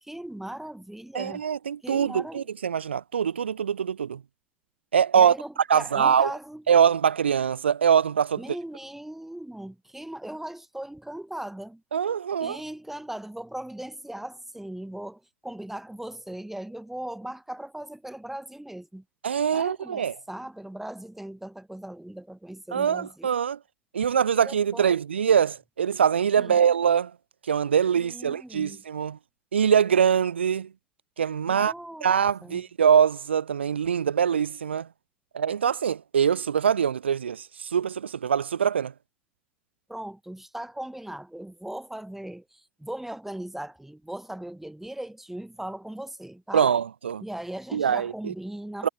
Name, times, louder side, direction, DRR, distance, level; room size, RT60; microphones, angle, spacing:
voice 1, 0.0-1.4 1.8-2.5 5.1-6.6 8.4-11.8 12.4-19.0 19.5-23.3 24.4-25.0 26.4-26.6 28.0-28.8 31.5-32.1 32.4-32.6 39.9-46.7 47.2-48.9, right 1 dB, 5° right, 1.0 m, -38 dB
voice 2, 1.1-4.2 4.9-5.3 5.7-6.3 6.7-8.4 11.9-12.6 19.2-20.1 22.7-23.6 23.9-27.1 27.5-29.2 29.5-30.7 31.2-31.7 32.0-34.9 35.3-38.9 46.5-47.2 47.7-48.3 48.8-48.9, right 7 dB, 80° right, 0.4 m, -23 dB
figure-of-eight pair, 65°, 6 cm